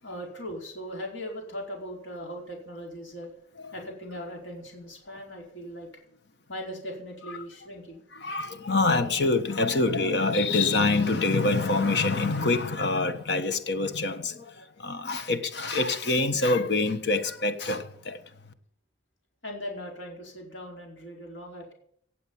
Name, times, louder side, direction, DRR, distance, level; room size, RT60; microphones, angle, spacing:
voice 1, 0.0-3.3 3.7-5.9 6.5-8.0 19.4-21.7, equal, 80° left, 4.7 m, -39 dB
voice 2, 8.1-18.2, left 3 dB, 60° left, 1.4 m, -26 dB
18.0 x 7.2 x 7.2 m
head